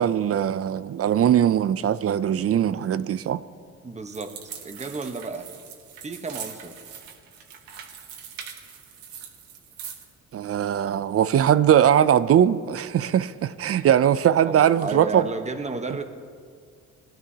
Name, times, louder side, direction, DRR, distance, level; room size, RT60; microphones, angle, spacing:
voice 1, 0.0-3.4 10.3-15.2, right 10 dB, 45° right, 0.5 m, -20 dB
voice 2, 3.8-4.3 4.6-5.5 6.0-6.7 14.4-16.0, right 3 dB, 20° right, 1.1 m, -32 dB
sound 1, 4.1-10.1, right 8 dB, 85° right, 1.4 m, -42 dB
19.0 x 12.0 x 2.8 m
cardioid pair, 85°, 34 cm